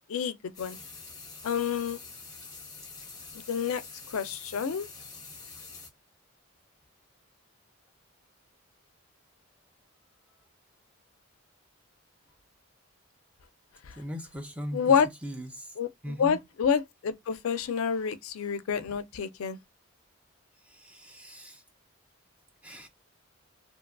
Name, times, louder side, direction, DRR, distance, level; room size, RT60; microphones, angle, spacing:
voice 1, 0.1-0.8 1.4-2.0 3.5-3.8 4.1-4.9 13.8-14.0 14.7-15.1 15.8-19.6, left 7 dB, 85° left, 0.4 m, -28 dB
sound 1, 0.5-5.9, left 4 dB, 15° left, 0.8 m, -46 dB
voice 2, 14.0-15.5 16.0-16.5 20.6-21.6 22.6-22.9, equal, 5° right, 0.4 m, -40 dB
2.8 x 2.2 x 2.3 m
head